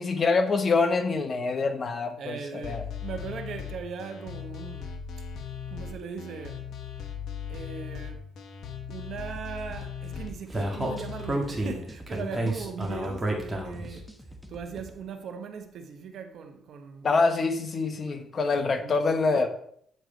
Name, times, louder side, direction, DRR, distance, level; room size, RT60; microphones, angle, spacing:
voice 1, 0.0-2.8 17.0-19.5, left 4 dB, 40° left, 1.2 m, -25 dB
voice 2, 2.2-5.3 5.7-6.7 7.5-8.3 8.9-14.1 14.5-17.1 18.1-19.5, right 6 dB, 65° right, 1.0 m, -39 dB
sound 1, 2.6-11.4, left 7 dB, 70° left, 1.1 m, -38 dB
sound 2, 9.4-14.9, equal, 5° left, 1.1 m, -47 dB
Speech, 10.5-13.9, right 1 dB, 20° right, 1.9 m, -30 dB
9.1 x 4.7 x 5.1 m
cardioid pair, 90°, 0 cm